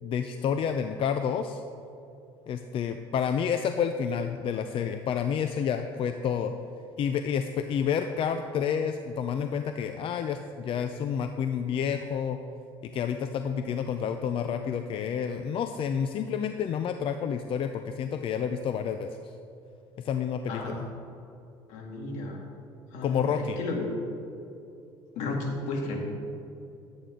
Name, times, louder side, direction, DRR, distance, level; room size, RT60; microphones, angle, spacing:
voice 1, 0.0-1.6 2.5-6.5 7.0-12.4 12.8-19.3 20.0-20.9 23.0-23.6, left 7 dB, 50° left, 8 dB, 0.5 m, -29 dB
voice 2, 21.7-22.4 22.9-23.8 25.2-26.0, left 2 dB, 75° left, 0 dB, 2.0 m, -33 dB
11.0 x 8.6 x 3.8 m, 2.7 s
supercardioid pair, 85°, 12 cm